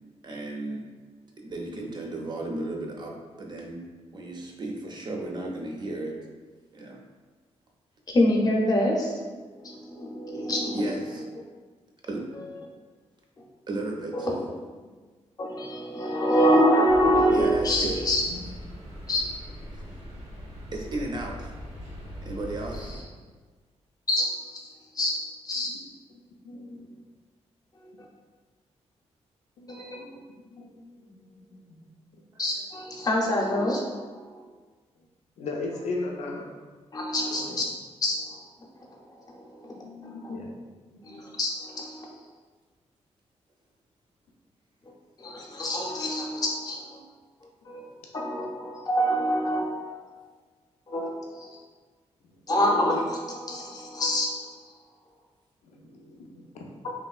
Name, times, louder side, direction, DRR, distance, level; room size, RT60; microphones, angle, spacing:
voice 1, 0.2-0.9 1.4-3.8 4.1-6.2 6.7-7.0 10.7-11.2 12.1-12.3 13.7-14.3 17.3-18.0 19.7-19.8 20.7-21.5 22.2-23.0 32.3-32.4, right 2 dB, 40° right, 1 dB, 0.4 m, -34 dB
voice 2, 8.1-9.3 9.6-10.8 14.1-14.4 15.4-18.2 19.1-19.3 24.1-24.7 24.9-25.7 29.7-30.0 32.4-34.4 36.9-37.6 38.0-38.4 39.3-39.6 40.0-40.2 41.0-42.1 45.2-47.0 47.7-47.9 48.1-50.0 50.9-51.6 52.5-54.5 56.8-56.9, equal, 35° left, -1 dB, 0.5 m, -26 dB
sound 1, 16.9-23.0, left 1 dB, 80° right, 0.8 m, -40 dB
voice 3, 26.4-26.9 29.6-30.2 30.5-31.9 35.4-36.5 37.5-37.6 39.6-40.5 40.8-41.1 55.7-56.7, left 3 dB, 90° left, 0 dB, 0.4 m, -38 dB
3.0 x 2.6 x 2.3 m, 1.4 s
wide cardioid pair, 125°, 11 cm